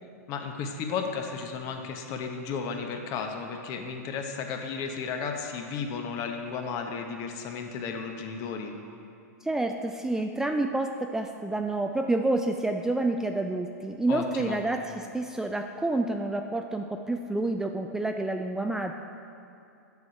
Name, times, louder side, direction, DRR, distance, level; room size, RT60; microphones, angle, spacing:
voice 1, 0.3-8.7 14.1-14.6, left 5 dB, 40° left, 4 dB, 0.9 m, -34 dB
voice 2, 9.4-18.9, right 2 dB, 5° right, 4 dB, 0.3 m, -29 dB
7.2 x 6.3 x 5.4 m, 2.6 s
hypercardioid pair, 110°, 9 cm